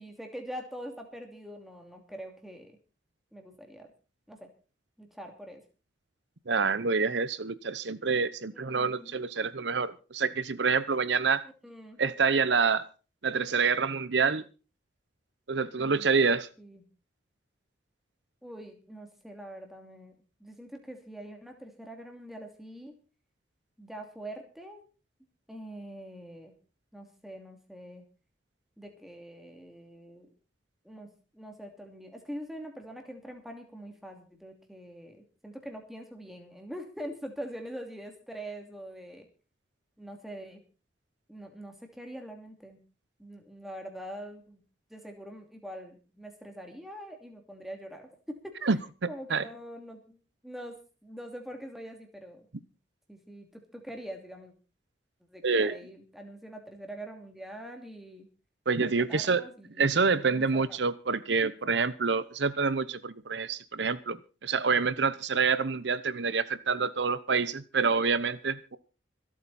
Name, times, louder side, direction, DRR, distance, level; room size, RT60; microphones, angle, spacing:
voice 1, 0.0-2.8 3.3-3.9 4.3-4.5 5.0-5.6 8.5-9.1 11.6-12.0 15.8-16.1 16.6-16.8 18.4-22.9 23.8-24.8 25.5-26.5 26.9-28.0 28.8-30.3 30.8-31.1 31.3-39.3 40.0-40.6 41.3-42.8 43.2-44.6 44.9-48.8 49.1-50.8 51.0-52.5 53.1-54.5 55.3-58.3 58.8-60.8, equal, ahead, 3 dB, 2.7 m, -44 dB
voice 2, 6.5-11.4 12.0-12.9 13.2-14.4 15.5-16.5 48.6-48.8 49.3-49.4 55.4-55.8 58.7-59.4 59.8-68.8, right 5 dB, 75° right, 15 dB, 0.9 m, -27 dB
26.0 x 8.7 x 4.2 m, 0.35 s
head